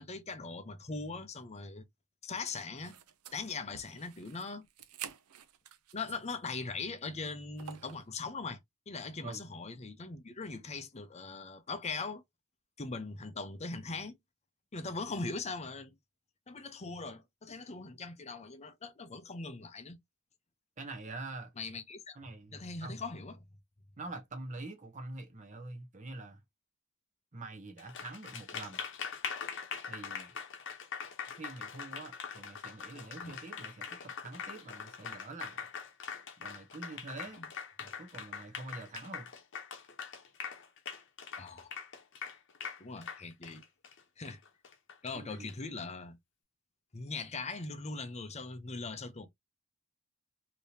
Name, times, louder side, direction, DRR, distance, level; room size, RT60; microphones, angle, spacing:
voice 1, 0.0-1.8 2.2-3.0 3.3-4.7 5.9-8.6 8.9-12.2 12.8-14.2 14.7-16.0 16.5-20.0 21.6-22.2 22.5-23.4 33.2-33.4 37.4-37.5 41.4-41.7 42.8-43.6 44.2-44.4 45.0-46.2 46.9-49.3, left 3 dB, 30° left, 0.6 m, -40 dB
sound 1, 2.8-6.4 6.8-6.9 7.6-8.1, right 9 dB, 90° right, 0.5 m, -49 dB
voice 2, 20.8-21.5 22.1-23.0 24.0-26.4 27.3-28.8 29.8-30.3 31.3-35.6 36.4-37.4 37.8-39.3 45.1-45.5, right 2 dB, 35° right, 0.8 m, -45 dB
Applause, 27.8-45.5, left 6 dB, 55° left, 0.9 m, -43 dB
3.4 x 2.9 x 2.7 m
head